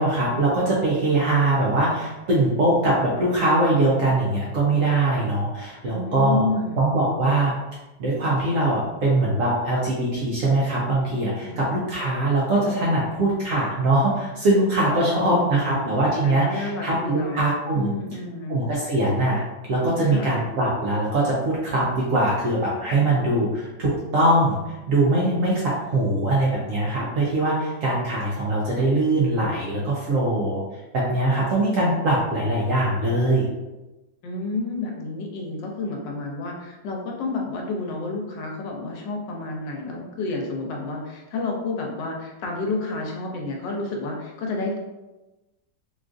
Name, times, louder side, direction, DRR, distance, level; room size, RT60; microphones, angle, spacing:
voice 1, 0.0-6.5 6.8-7.5 8.0-17.9 18.5-19.4 19.7-30.6 30.9-33.5, right 2 dB, 70° right, -5 dB, 0.8 m, -22 dB
voice 2, 5.8-6.9 11.4-11.6 14.9-15.8 16.2-17.5 17.8-18.6 20.0-20.3 34.2-44.8, left 3 dB, 85° left, 0 dB, 1.3 m, -30 dB
3.7 x 2.4 x 2.4 m, 1.1 s
omnidirectional pair, 1.9 m